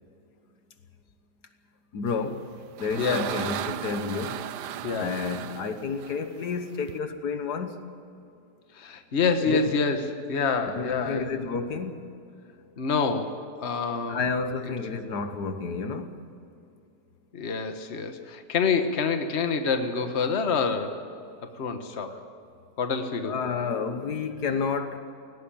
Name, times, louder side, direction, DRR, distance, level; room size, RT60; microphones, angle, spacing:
voice 1, 1.9-2.4 2.8-4.4 4.9-7.8 9.4-9.6 10.7-12.0 14.1-16.2 22.1-22.2 23.2-25.0, left 5 dB, 75° left, 8 dB, 1.8 m, -30 dB
sound 1, 2.3-7.0, right 10 dB, 90° right, 1.3 m, -36 dB
voice 2, 3.0-3.3 4.8-5.1 8.7-11.3 12.8-14.2 17.3-21.0 21.5-22.2 22.8-23.4, left 5 dB, 45° left, 7 dB, 1.5 m, -27 dB
17.5 x 17.5 x 8.9 m, 2.6 s
omnidirectional pair, 1.7 m